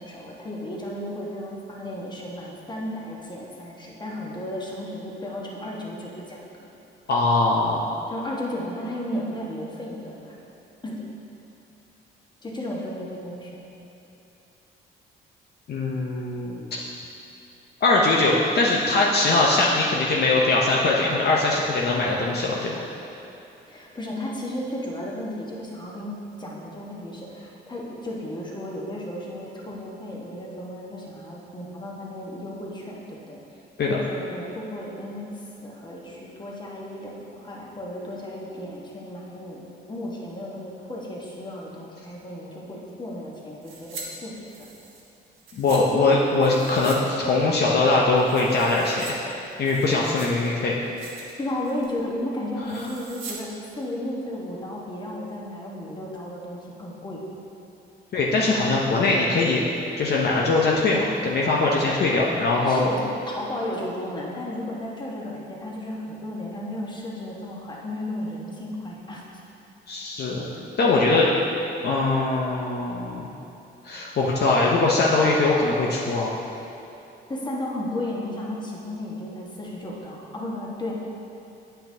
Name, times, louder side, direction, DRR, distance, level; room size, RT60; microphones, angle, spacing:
voice 1, 0.0-6.7 8.1-10.3 10.8-11.1 12.4-13.6 23.7-33.4 33.9-44.3 51.4-57.3 62.6-69.4 70.8-71.4 77.3-80.9, left 1 dB, 20° left, -3 dB, 1.3 m, -34 dB
voice 2, 7.1-7.9 15.7-16.6 17.8-22.7 33.8-34.0 45.5-49.2 49.6-50.7 58.1-59.6 60.0-62.9 69.9-70.4 70.8-71.3 71.8-73.3 73.8-76.4, left 3 dB, 55° left, -3 dB, 0.8 m, -21 dB
sound 1, 43.6-44.1 44.4-45.8 46.4-47.0 47.3-47.4 47.9-49.1 49.5-50.5 50.8-51.3 51.6-52.0 52.6-53.4 53.7-53.8, right 4 dB, 80° right, 1.3 m, -42 dB
8.8 x 5.7 x 2.8 m, 2.9 s
cardioid pair, 90°, 20 cm